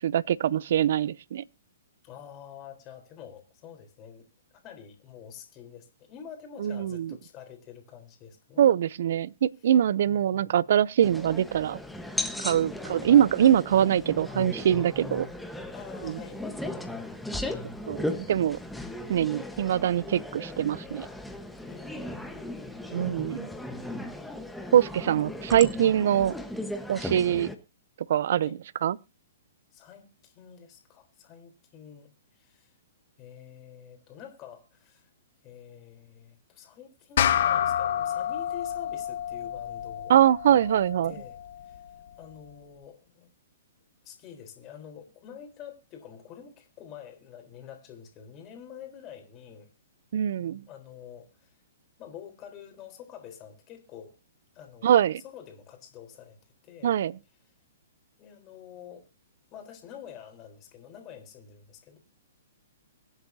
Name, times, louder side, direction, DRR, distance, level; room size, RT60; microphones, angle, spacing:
voice 1, 0.0-1.4 6.6-7.1 8.6-11.8 12.4-15.3 16.0-16.2 17.9-18.6 19.1-21.1 22.9-23.5 24.7-26.3 26.9-27.5 28.1-28.5 28.8-29.0 40.1-41.1 50.1-50.6 54.8-55.2 56.8-57.1, right 10 dB, 60° right, 0.5 m, -23 dB
voice 2, 2.0-4.3 4.5-8.6 10.1-10.5 12.7-13.1 15.7-16.6 21.6-22.8 28.4-28.6 29.7-32.7 33.2-35.1 35.4-40.2 40.5-40.8 41.0-41.8 42.2-43.3 44.0-49.7 50.7-51.5 52.0-54.2 54.5-55.0 55.2-56.4 56.6-57.0 58.2-59.1 59.5-62.0, left 8 dB, 25° left, 3.9 m, -47 dB
sound 1, 11.0-27.5, left 1 dB, ahead, 1.2 m, -37 dB
sound 2, 37.2-41.9, left 10 dB, 60° left, 1.2 m, -29 dB
23.5 x 8.1 x 2.8 m
hypercardioid pair, 145°, 0 cm